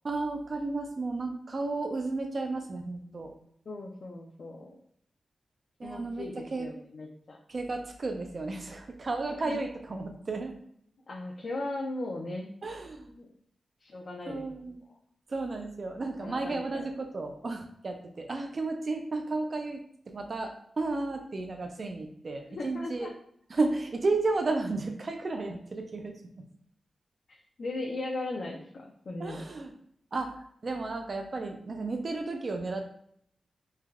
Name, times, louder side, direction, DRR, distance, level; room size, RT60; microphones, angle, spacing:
voice 1, 0.0-3.3 5.8-6.7 7.5-10.6 12.6-13.1 14.3-14.8 15.3-23.1 23.5-26.2 29.2-29.7 30.1-32.8, right 3 dB, 45° right, 4 dB, 0.3 m, -33 dB
voice 2, 3.7-4.8 5.8-7.4 9.3-9.6 11.1-12.5 13.1-13.3 13.8-14.4 16.2-16.8 22.5-23.1 27.3-29.4, left 2 dB, 55° left, -1 dB, 0.4 m, -38 dB
3.2 x 2.2 x 2.3 m, 0.66 s
wide cardioid pair, 130°, 0 cm